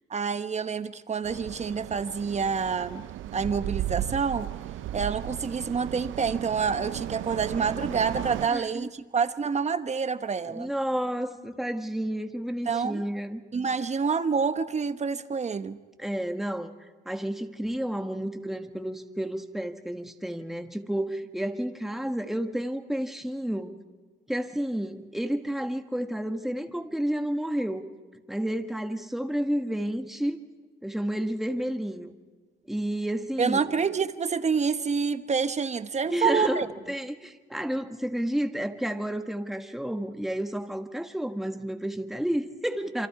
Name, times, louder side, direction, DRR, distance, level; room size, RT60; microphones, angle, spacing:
voice 1, 0.1-4.5 4.9-10.7 12.7-13.0 13.5-15.8 33.4-36.7, right 5 dB, 35° right, 11 dB, 1.1 m, -27 dB
sound 1, 1.2-8.5, right 13 dB, 80° right, 0.6 m, -35 dB
voice 2, 8.5-8.9 10.5-13.4 16.0-23.8 24.3-27.9 28.3-30.4 30.8-32.1 32.7-33.7 36.1-43.1, right 1 dB, ahead, 6 dB, 1.4 m, -31 dB
28.0 x 25.0 x 4.8 m, 1.4 s
cardioid pair, 90°, 20 cm